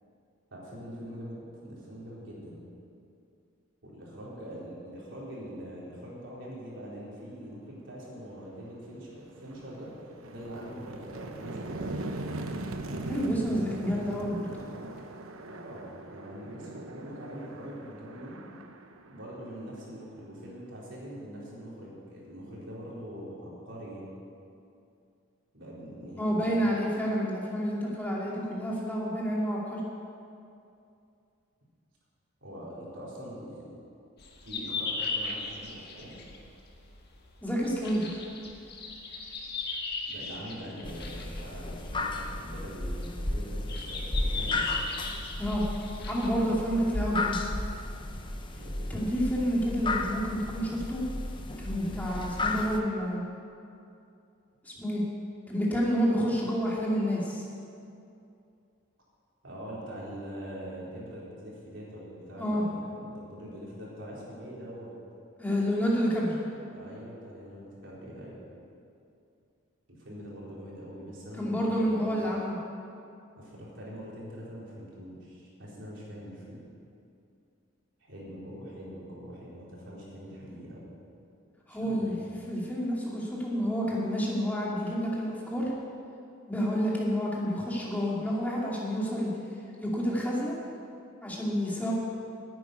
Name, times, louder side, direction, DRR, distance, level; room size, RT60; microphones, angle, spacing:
voice 1, 0.5-2.6 3.8-9.9 10.3-12.0 15.4-18.4 19.1-24.1 25.5-26.7 32.4-33.7 34.4-36.2 40.1-44.7 48.5-49.0 59.4-64.9 66.7-68.4 69.9-72.2 73.4-76.6 78.0-80.9 81.7-82.3, equal, 60° right, -6 dB, 4.0 m, -43 dB
sound 1, 8.4-8.6 9.0-19.8, right 2 dB, 85° right, 0.9 m, -40 dB
voice 2, 13.1-14.5 26.2-29.8 37.4-38.2 45.4-45.6 46.1-47.4 48.9-51.0 51.6-53.2 54.6-55.0 55.5-57.5 62.4-62.6 65.4-66.4 71.4-72.6 81.7-82.2 82.5-85.7 86.5-89.3 89.8-90.6 91.2-91.9, equal, 10° left, -5 dB, 2.5 m, -29 dB
sound 2, 34.2-46.3, left 3 dB, 50° left, 1.6 m, -37 dB
sound 3, 40.8-52.8, left 2 dB, 25° left, 0.8 m, -34 dB
10.5 x 9.1 x 9.5 m, 2.6 s
head